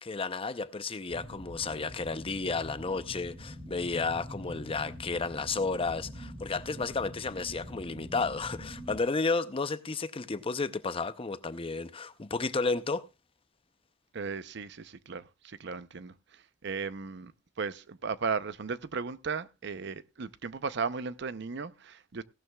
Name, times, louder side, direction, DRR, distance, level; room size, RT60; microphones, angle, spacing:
voice 1, 0.0-13.0, left 4 dB, 30° left, 0.6 m, -32 dB
sound 1, 1.1-9.0, equal, 35° right, 2.5 m, -44 dB
voice 2, 14.1-16.1 16.6-17.3 17.6-22.2, right 5 dB, 60° right, 0.7 m, -36 dB
17.5 x 12.5 x 2.3 m
head